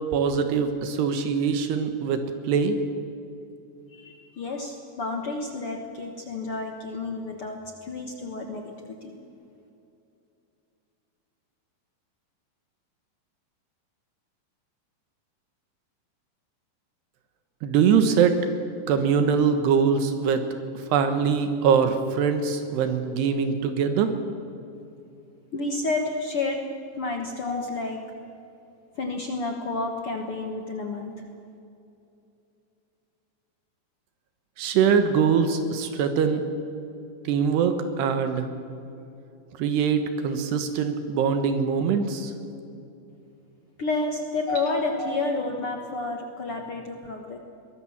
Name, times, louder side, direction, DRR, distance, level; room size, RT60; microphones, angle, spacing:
voice 1, 0.1-2.8 17.6-18.4 18.9-20.4 20.9-24.1 34.6-36.4 37.3-38.5 39.6-42.3, right 6 dB, 80° right, 8 dB, 3.3 m, -23 dB
voice 2, 3.9-9.2 25.5-26.6 27.0-28.1 29.0-31.2 43.8-47.4, left 3 dB, 70° left, 3 dB, 1.3 m, -30 dB
23.5 x 20.0 x 7.4 m, 2.7 s
omnidirectional pair, 4.8 m